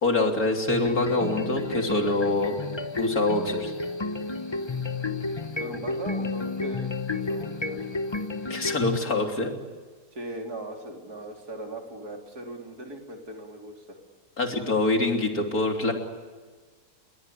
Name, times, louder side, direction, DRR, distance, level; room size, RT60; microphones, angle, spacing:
voice 1, 0.0-2.6 3.0-3.7 8.5-9.5 14.4-15.9, left 2 dB, 60° left, 3 dB, 3.7 m, -25 dB
sound 1, 0.7-9.0, left 3 dB, 20° left, 0.9 m, -31 dB
voice 2, 5.6-7.9 10.1-14.0, right 1 dB, 70° right, 2 dB, 4.3 m, -39 dB
29.5 x 21.5 x 8.4 m, 1.4 s
omnidirectional pair, 1.7 m